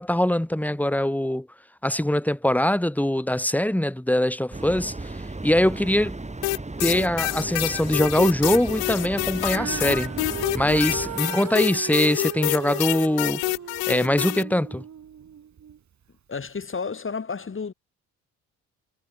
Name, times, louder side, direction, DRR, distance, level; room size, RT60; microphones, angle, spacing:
voice 1, 0.0-1.5 1.8-5.2 5.4-6.2 6.8-10.1 10.5-13.4 13.9-14.8, left 1 dB, 5° left, 1.9 m, -22 dB
sound 1, 4.5-11.2, right 2 dB, 20° right, 6.4 m, -35 dB
sound 2, 6.4-14.4, left 28 dB, 80° left, 2.7 m, -27 dB
Female singing, 9.4-15.8 16.5-16.6, right 8 dB, 50° right, 3.3 m, -37 dB
voice 2, 16.3-17.7, left 5 dB, 35° left, 3.1 m, -31 dB
hypercardioid pair, 50°, 36 cm